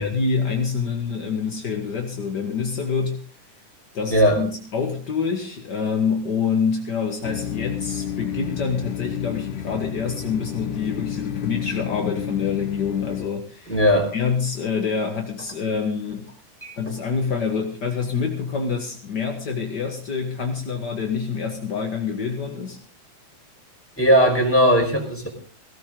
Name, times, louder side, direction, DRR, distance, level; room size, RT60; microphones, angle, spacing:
voice 1, 0.0-3.2 3.9-13.8 14.1-16.2 16.8-22.8, left 5 dB, 45° left, 2 dB, 1.4 m, -26 dB
voice 2, 4.1-4.4 13.7-14.1 16.6-16.9 24.0-25.3, equal, 5° left, 2 dB, 4.7 m, -18 dB
sound 1, 7.2-13.3, left 9 dB, 65° left, 2.4 m, -31 dB
18.5 x 17.5 x 3.9 m, 0.40 s
omnidirectional pair, 4.3 m